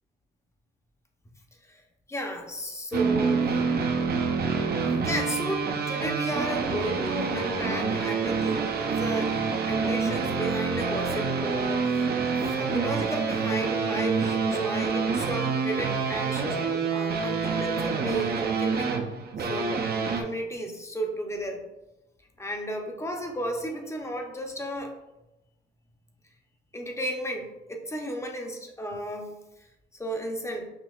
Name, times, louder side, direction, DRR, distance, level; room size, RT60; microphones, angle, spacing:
voice 1, 2.1-3.5 5.0-12.1 12.5-19.0 19.4-19.8 20.2-21.6 22.4-24.9 26.7-29.4 30.0-30.7, right 1 dB, 15° left, 2 dB, 0.7 m, -33 dB
flange the E to D to F sharp, 2.9-20.2, right 5 dB, 50° right, 0.6 m, -27 dB
5.9 x 2.8 x 2.4 m, 0.98 s
cardioid pair, 90°, 20 cm